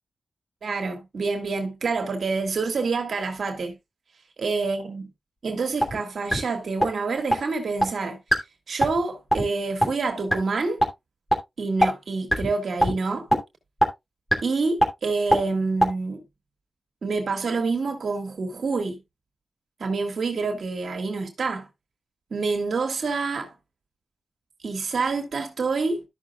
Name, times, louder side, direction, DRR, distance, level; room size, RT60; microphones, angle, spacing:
voice 1, 0.6-3.8 4.4-5.0 5.4-8.2 8.7-10.8 11.6-13.3 14.4-16.2 17.0-19.0 19.8-21.7 22.3-23.5 24.6-26.0, right 4 dB, 70° right, 1.9 m, -27 dB
sound 1, 5.8-6.0 6.3-6.4 6.8-6.9 7.3-7.4 7.8-7.9 8.3-8.4 8.8-9.0 9.3-9.5 9.8-9.9 10.3-10.4 10.8-10.9 11.3-11.4 11.8-11.9 12.3-12.5 12.8-12.9 13.3-13.4 13.8-13.9 14.3-14.4 14.8-14.9 15.3-15.4 15.8-15.9, equal, 15° left, 2.7 m, -19 dB
13.5 x 6.1 x 2.3 m
cardioid pair, 60°, 0 cm